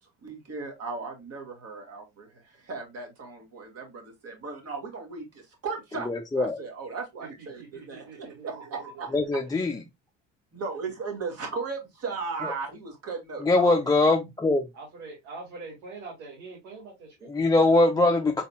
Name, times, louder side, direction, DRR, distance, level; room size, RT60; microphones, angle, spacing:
voice 1, 0.2-9.1 10.5-13.8, right 4 dB, 40° right, 2.1 m, -36 dB
voice 2, 6.1-6.6 9.1-9.8 12.4-12.5 13.4-14.6 17.3-18.4, left 2 dB, 10° left, 0.4 m, -22 dB
voice 3, 7.2-9.8 14.7-17.6, right 3 dB, 75° right, 2.0 m, -45 dB
4.1 x 4.0 x 2.2 m
hypercardioid pair, 75°, 37 cm